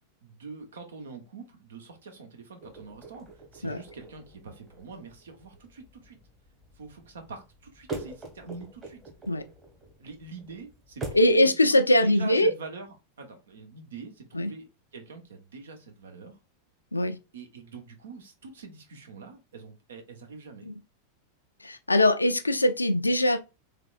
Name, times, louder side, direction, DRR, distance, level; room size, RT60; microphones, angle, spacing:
voice 1, 0.2-6.2 6.8-9.0 10.0-11.4 11.7-16.4 17.3-20.7, right 4 dB, 65° right, 0.9 m, -45 dB
sound 1, 2.6-11.4, right 2 dB, 20° right, 1.4 m, -44 dB
voice 2, 11.1-12.5 14.3-14.5 16.9-17.2 20.6-20.7 21.6-23.4, left 1 dB, 80° left, 0.4 m, -22 dB
3.4 x 3.3 x 2.5 m
figure-of-eight pair, 90°, 0 cm